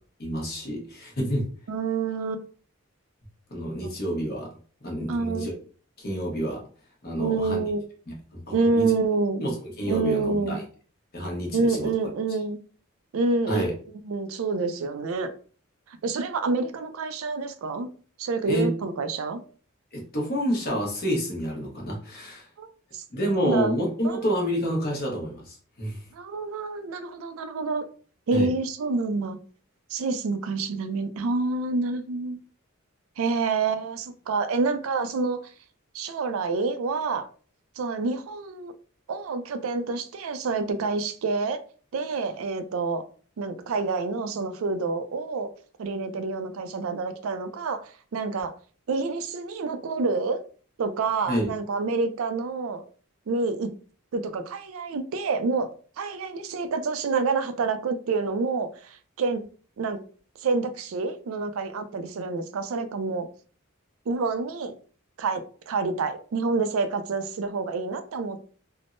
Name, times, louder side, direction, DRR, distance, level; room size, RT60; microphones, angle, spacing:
voice 1, 0.2-1.5 3.5-4.5 4.8-5.6 6.0-6.6 7.0-7.6 8.1-8.9 9.4-10.6 11.1-11.9 13.5-13.7 18.5-18.7 19.9-22.5 23.1-26.0 28.3-28.5 51.3-51.5, equal, 45° left, 0.9 m, -28 dB
voice 2, 1.7-2.5 3.8-3.9 5.1-5.5 7.2-7.9 8.5-9.4 9.9-10.6 11.5-12.6 13.1-13.7 14.0-15.3 16.0-17.9 18.2-19.4 22.6-22.7 22.9-23.0 23.4-23.7 24.0-24.3 26.1-27.9 28.3-29.4 29.9-32.4 33.2-35.4 35.9-37.2 37.8-38.7 39.1-41.6 41.9-43.0 43.4-45.5 45.8-48.5 48.9-50.4 50.8-52.8 53.3-53.7 54.1-55.7 56.0-59.4 59.8-60.0 60.4-63.3 64.1-64.7 65.2-68.4, right 4 dB, 75° right, 0.4 m, -27 dB
3.4 x 2.0 x 2.5 m
head